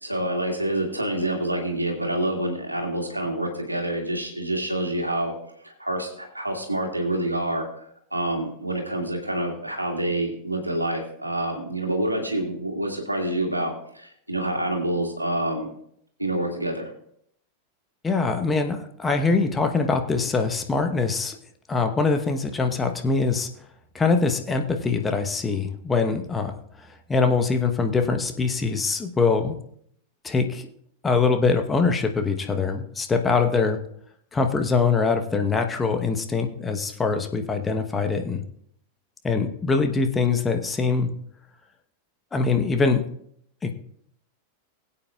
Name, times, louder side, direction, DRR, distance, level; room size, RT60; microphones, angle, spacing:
voice 1, 0.0-5.3 5.6-15.7 16.2-16.9, right 1 dB, 85° right, 1 dB, 2.1 m, -27 dB
voice 2, 18.0-21.4 21.7-23.5 23.9-26.5 27.1-29.6 30.2-30.7 31.0-33.8 34.3-38.4 39.2-41.1 42.3-43.0 43.6-43.7, left 4 dB, 15° left, 5 dB, 1.0 m, -23 dB
21.0 x 8.6 x 2.4 m, 0.68 s
figure-of-eight pair, 90°, 0 cm